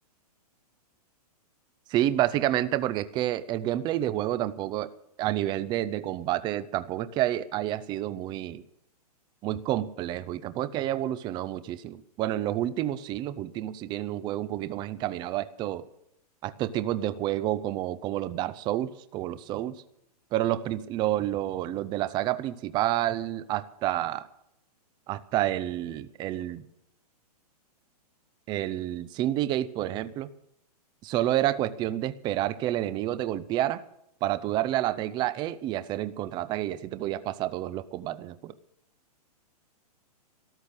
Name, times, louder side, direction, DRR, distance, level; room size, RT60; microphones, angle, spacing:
voice 1, 1.9-4.9 5.2-8.6 9.4-15.9 16.4-19.7 20.3-24.3 25.1-26.6 28.5-30.3 31.0-33.8 34.2-38.5, right 13 dB, 20° right, 14 dB, 0.6 m, -29 dB
13.5 x 12.0 x 8.2 m, 0.78 s
hypercardioid pair, 150°, 20 cm